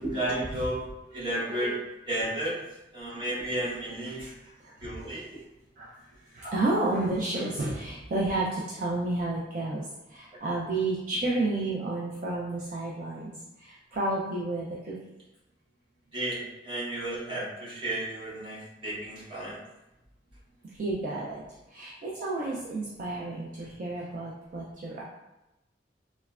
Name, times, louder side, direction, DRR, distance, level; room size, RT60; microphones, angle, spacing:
voice 1, 0.0-1.8 2.1-2.6 2.9-4.3 4.8-5.2 6.4-6.6 16.1-19.6 22.2-22.3, right 1 dB, 30° right, -7 dB, 0.8 m, -32 dB
voice 2, 4.6-5.0 5.8-5.9 6.3-9.8 10.1-13.3 13.6-14.9 20.8-21.4 21.7-25.0, right 2 dB, 45° right, -5 dB, 0.4 m, -31 dB
3.1 x 2.1 x 2.3 m, 0.96 s
head